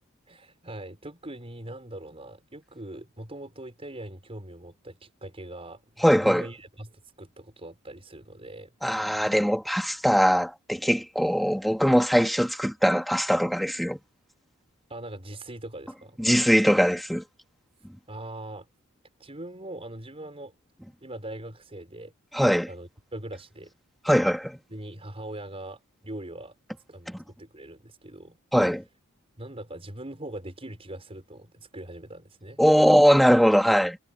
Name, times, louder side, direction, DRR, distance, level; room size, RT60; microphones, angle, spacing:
voice 1, 0.3-8.7 14.9-16.2 18.1-18.7 19.2-20.5 21.0-22.1 22.7-23.7 24.7-26.6 26.9-28.4 29.4-32.9, right 1 dB, 30° right, 5.5 m, -41 dB
voice 2, 6.0-6.5 8.8-14.0 16.2-17.2 22.3-22.7 24.1-24.6 28.5-28.8 32.6-34.0, equal, ahead, 2.5 m, -21 dB
head